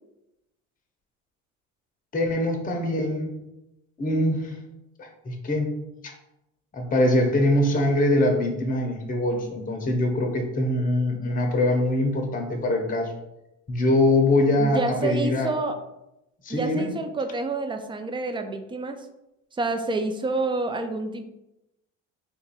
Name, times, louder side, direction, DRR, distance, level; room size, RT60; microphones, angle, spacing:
voice 1, 2.1-3.4 4.0-4.6 5.0-6.1 6.7-13.1 13.7-15.5 16.4-16.9, left 1 dB, 25° left, 3 dB, 0.7 m, -23 dB
voice 2, 14.6-15.8 16.5-19.1 19.5-21.2, right 3 dB, 15° right, 7 dB, 0.3 m, -28 dB
2.6 x 2.5 x 3.9 m, 0.89 s
supercardioid pair, 75°, 37 cm